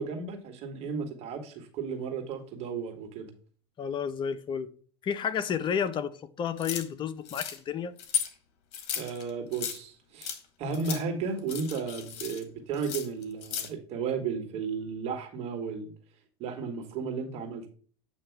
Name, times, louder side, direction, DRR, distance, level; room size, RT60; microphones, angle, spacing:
voice 1, 0.0-3.3 9.0-15.9 16.4-17.7, right 5 dB, 55° right, 1.8 m, -34 dB
voice 2, 3.8-4.7 5.0-8.0, left 7 dB, 40° left, 0.8 m, -31 dB
sound 1, 6.6-6.8 7.2-7.6 8.0-8.3 8.7-9.8 10.2-10.4 10.7-11.0 11.4-12.4 12.7-13.7, left 8 dB, 60° left, 1.4 m, -35 dB
8.4 x 2.9 x 4.6 m
hypercardioid pair, 95°, 13 cm